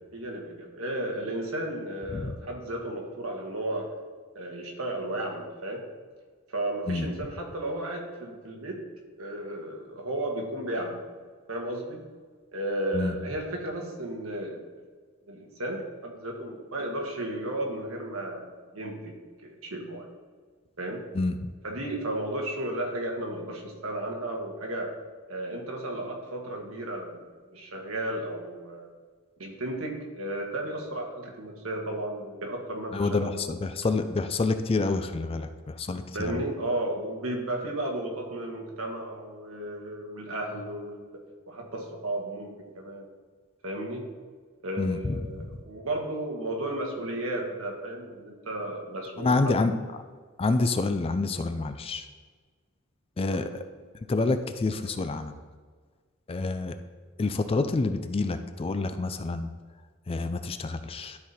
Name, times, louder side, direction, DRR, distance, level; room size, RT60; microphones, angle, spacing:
voice 1, 0.1-3.9 4.3-5.9 6.5-8.8 9.2-11.0 11.5-12.0 12.5-14.6 15.3-19.1 19.4-20.1 20.8-21.0 21.6-24.9 25.3-27.2 27.5-28.9 29.4-33.7 36.1-41.1 41.5-42.5 42.8-43.1 43.6-44.1 44.6-49.6 53.3-53.5, right 1 dB, 70° right, 1 dB, 1.5 m, -34 dB
voice 2, 32.9-36.4 44.8-45.5 49.2-49.7 50.4-52.1 53.2-53.6 54.1-55.3 56.3-56.8 57.2-59.5 60.1-61.2, left 3 dB, 25° left, 9 dB, 0.4 m, -28 dB
12.0 x 4.1 x 4.2 m, 1.5 s
head